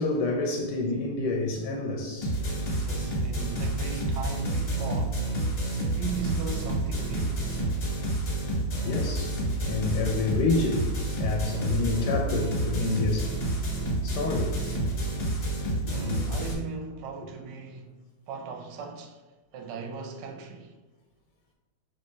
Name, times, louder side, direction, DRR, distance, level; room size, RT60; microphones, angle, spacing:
voice 1, 0.0-2.4 8.8-13.3 13.6-13.7 14.0-15.0, left 3 dB, 75° left, 1.1 m, -29 dB
sound 1, 2.2-16.5, right 1 dB, 40° left, 1.1 m, -29 dB
voice 2, 2.8-5.3 5.8-7.4 9.4-9.6 15.9-19.2 19.5-20.7, right 5 dB, 85° right, 1.3 m, -38 dB
4.6 x 3.0 x 3.2 m
omnidirectional pair, 1.9 m